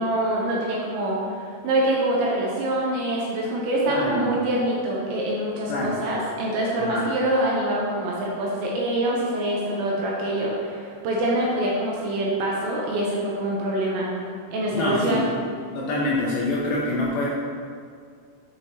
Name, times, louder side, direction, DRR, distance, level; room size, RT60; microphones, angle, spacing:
voice 1, 0.0-14.1 14.5-15.3, right 1 dB, 80° right, -4 dB, 2.8 m, -25 dB
voice 2, 3.9-4.3 5.7-6.0 6.9-7.1 14.7-15.3 15.7-17.3, left 2 dB, 80° left, -5 dB, 2.6 m, -25 dB
8.4 x 6.3 x 2.9 m, 2.2 s
omnidirectional pair, 5.8 m